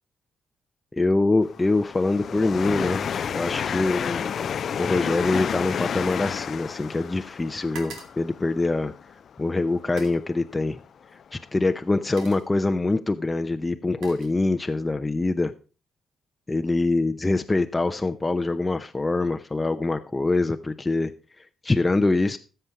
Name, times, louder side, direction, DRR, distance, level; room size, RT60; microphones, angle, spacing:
voice 1, 0.9-4.3 4.8-8.9 9.4-10.8 11.3-15.5 16.5-21.1 21.6-22.4, left 2 dB, 20° left, 7 dB, 0.7 m, -24 dB
sound 1, 1.4-10.1 10.8-10.9 11.7-11.8, left 7 dB, 55° left, 0.4 m, -31 dB
sound 2, 3.9-7.0 7.3-9.2 9.8-10.3 11.3-11.5 11.9-12.6 13.5-14.9 15.2-15.6, right 4 dB, 85° right, 2.7 m, -48 dB
13.5 x 6.8 x 4.7 m, 0.34 s
cardioid pair, 95°, 0 cm